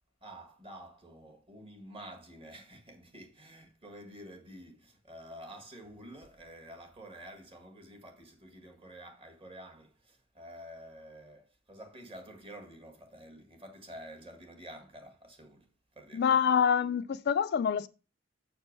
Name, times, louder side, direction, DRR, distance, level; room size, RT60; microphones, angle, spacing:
voice 1, 0.2-16.4, equal, 30° right, 1.9 m, -49 dB
voice 2, 16.1-17.9, left 7 dB, 55° left, 0.4 m, -26 dB
7.2 x 4.4 x 5.3 m
head